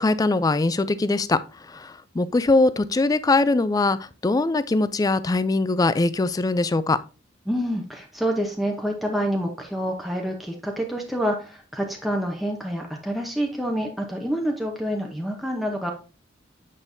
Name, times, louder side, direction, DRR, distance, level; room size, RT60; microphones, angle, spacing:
voice 1, 0.0-1.4 1.7-4.0 4.2-7.0, left 2 dB, 20° left, 0.3 m, -21 dB
voice 2, 7.5-15.9, equal, ahead, 0.8 m, -27 dB
8.3 x 5.3 x 2.7 m
head